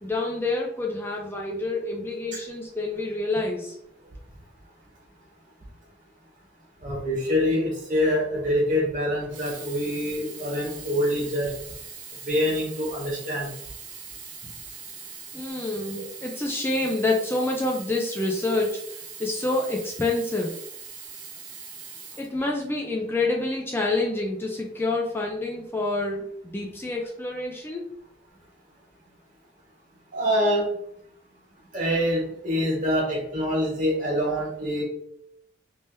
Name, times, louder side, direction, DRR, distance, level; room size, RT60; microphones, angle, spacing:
voice 1, 0.0-3.8 15.3-18.8 19.2-20.6 22.2-27.9, left 2 dB, 10° left, -1 dB, 0.4 m, -27 dB
voice 2, 6.8-11.5 12.3-13.5 16.0-16.1 30.1-30.7 31.7-34.8, equal, 45° right, -3 dB, 1.5 m, -25 dB
Sink (filling or washing), 9.2-23.0 23.7-23.8, right 6 dB, 75° right, 0.9 m, -42 dB
3.4 x 2.8 x 3.3 m, 0.72 s
head